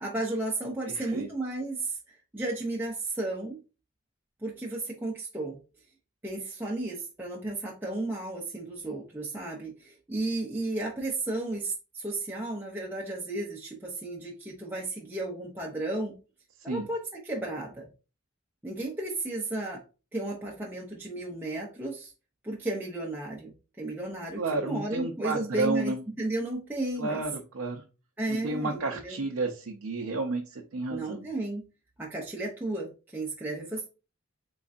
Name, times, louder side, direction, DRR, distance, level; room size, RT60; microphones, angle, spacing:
voice 1, 0.0-3.6 4.4-5.6 6.2-16.1 16.6-17.9 18.6-19.8 20.1-22.1 22.4-27.2 28.2-29.2 30.9-31.7 32.0-33.9, right 2 dB, 10° right, -4 dB, 0.5 m, -34 dB
voice 2, 0.9-1.3 16.7-16.9 24.4-26.0 27.0-27.8 28.3-31.3, right 3 dB, 80° right, 2 dB, 0.5 m, -31 dB
3.7 x 3.1 x 2.5 m, 0.32 s
head